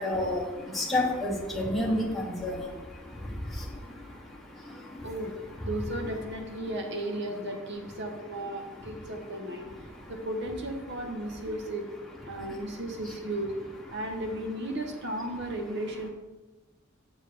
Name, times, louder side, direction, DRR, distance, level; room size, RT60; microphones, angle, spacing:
voice 1, 0.0-5.1 9.6-10.1 12.3-12.8, left 1 dB, ahead, -5 dB, 1.2 m, -32 dB
voice 2, 5.0-5.3 5.6-11.9 12.2-13.5 13.9-16.1, right 1 dB, 55° right, 3 dB, 1.1 m, -35 dB
7.5 x 7.3 x 3.4 m, 1.1 s
head